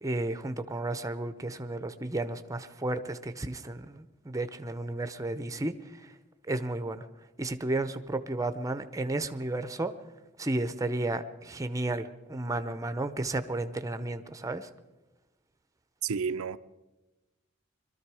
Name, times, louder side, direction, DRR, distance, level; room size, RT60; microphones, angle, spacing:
voice 1, 0.0-6.1 6.5-7.1 7.4-10.0 10.4-14.7, right 2 dB, 15° right, 0.7 m, -33 dB
voice 2, 16.0-16.6, right 6 dB, 85° right, 0.5 m, -30 dB
22.0 x 13.0 x 4.8 m
head